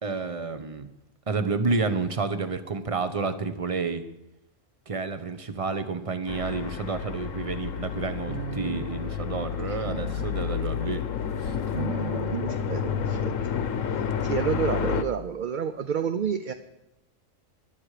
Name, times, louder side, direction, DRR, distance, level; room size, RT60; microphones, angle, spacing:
voice 1, 0.0-0.9 1.3-4.0 4.9-11.1 11.4-11.5, right 4 dB, 30° right, 10 dB, 1.0 m, -30 dB
sound 1, 6.3-15.0, left 7 dB, 75° left, 1.2 m, -30 dB
voice 2, 8.3-8.8 9.4-10.3 11.7-13.5 13.9-16.5, right 7 dB, 50° right, 8 dB, 0.7 m, -31 dB
20.0 x 11.5 x 5.0 m, 0.93 s
omnidirectional pair, 1.4 m